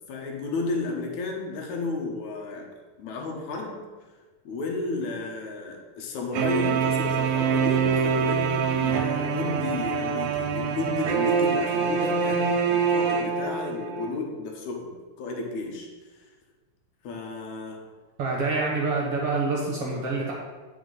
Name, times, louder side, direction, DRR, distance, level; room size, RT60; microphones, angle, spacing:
voice 1, 0.1-2.7 3.0-3.8 4.4-14.9 15.2-16.2 17.0-17.8 18.5-18.6, left 3 dB, 70° left, 1 dB, 2.4 m, -32 dB
sound 1, 6.3-14.1, right 6 dB, 75° right, 2.0 m, -25 dB
voice 2, 18.2-20.3, right 3 dB, 55° right, -3 dB, 1.9 m, -26 dB
9.1 x 5.3 x 3.9 m, 1.3 s
omnidirectional pair, 3.6 m